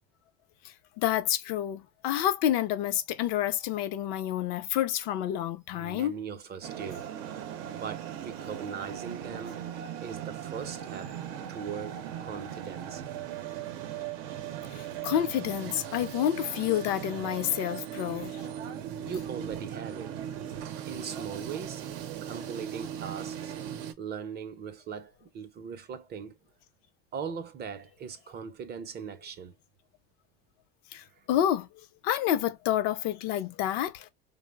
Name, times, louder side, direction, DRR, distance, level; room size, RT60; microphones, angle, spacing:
voice 1, 1.0-6.1 14.7-18.4 30.9-31.7 32.0-34.1, left 11 dB, 75° left, 0.5 m, -29 dB
voice 2, 5.7-7.1 7.7-9.6 10.0-11.2 11.5-13.0 19.1-20.1 20.9-21.8 22.2-23.5 24.0-26.4 27.1-29.5 31.1-31.3, right 6 dB, 35° right, 0.5 m, -40 dB
sound 1, 6.6-23.9, right 10 dB, 85° right, 0.6 m, -38 dB
3.2 x 2.0 x 2.2 m
supercardioid pair, 120°, 29 cm